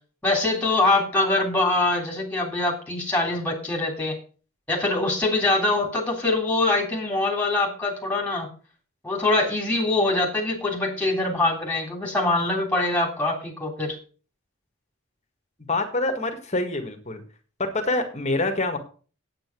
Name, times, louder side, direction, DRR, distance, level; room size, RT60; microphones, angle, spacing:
voice 1, 0.2-4.2 4.7-8.5 9.0-13.9, left 2 dB, 5° left, 0 dB, 3.3 m, -23 dB
voice 2, 15.7-17.2 17.6-18.8, left 2 dB, 30° left, 5 dB, 1.8 m, -26 dB
9.0 x 9.0 x 6.1 m, 0.39 s
head